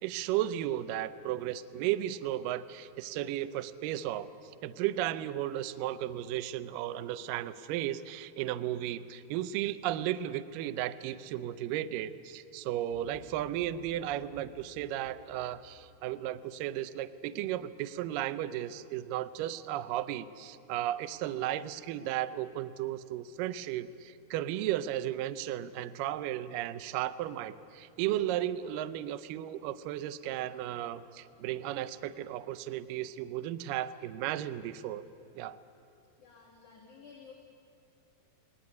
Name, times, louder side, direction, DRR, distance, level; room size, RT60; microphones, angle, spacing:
voice 1, 0.0-35.0 35.4-35.6, right 12 dB, 80° right, 12 dB, 2.0 m, -34 dB
sound 1, 12.9-16.3, left 3 dB, 5° right, 3.4 m, -57 dB
voice 2, 36.2-37.3, left 5 dB, 55° left, -4 dB, 3.6 m, -53 dB
20.5 x 19.5 x 9.3 m, 2.6 s
omnidirectional pair, 4.6 m